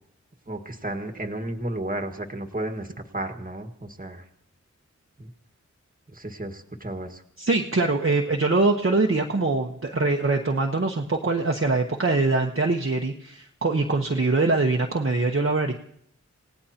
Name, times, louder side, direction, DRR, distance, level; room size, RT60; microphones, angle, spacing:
voice 1, 0.5-2.9 3.1-4.2 5.2-5.3 6.1-7.2, right 1 dB, 30° right, 5 dB, 1.7 m, -33 dB
voice 2, 7.4-15.7, right 3 dB, 45° right, 1 dB, 1.1 m, -23 dB
28.0 x 17.5 x 2.9 m, 0.69 s
wide cardioid pair, 50°, 30 cm